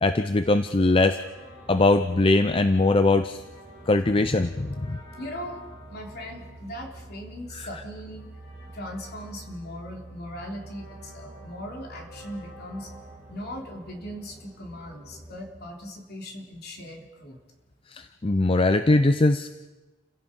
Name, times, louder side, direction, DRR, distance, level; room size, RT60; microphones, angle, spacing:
voice 1, 0.0-1.2 1.7-3.4 3.9-5.0 7.6-7.7 17.9-19.5, left 2 dB, 25° left, 10 dB, 0.6 m, -21 dB
sound 1, 0.8-14.6, left 1 dB, 80° left, 7.1 m, -52 dB
sound 2, 1.3-15.5, right 2 dB, 10° right, 4.0 m, -47 dB
voice 2, 5.2-5.6 5.9-8.3 8.7-12.9 13.3-17.4, equal, 50° left, 1 dB, 3.6 m, -39 dB
29.5 x 16.5 x 5.3 m, 1.2 s
head